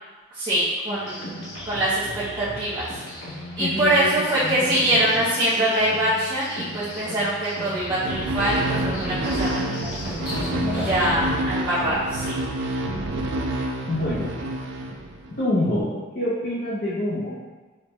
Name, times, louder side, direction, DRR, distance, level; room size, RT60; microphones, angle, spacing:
voice 1, 0.3-1.2 1.6-2.1 2.4-2.9 3.6-9.9 10.9-12.4, right 1 dB, 20° right, -13 dB, 0.7 m, -23 dB
sound 1, 0.9-11.3, left 1 dB, 70° left, 0.9 m, -35 dB
voice 2, 3.6-4.2 4.4-5.2 10.5-10.9 13.9-14.3 15.4-17.3, left 1 dB, 45° left, -8 dB, 0.5 m, -27 dB
sound 2, 8.0-15.4, right 1 dB, 65° right, 0.4 m, -28 dB
5.0 x 2.1 x 2.9 m, 1.3 s
head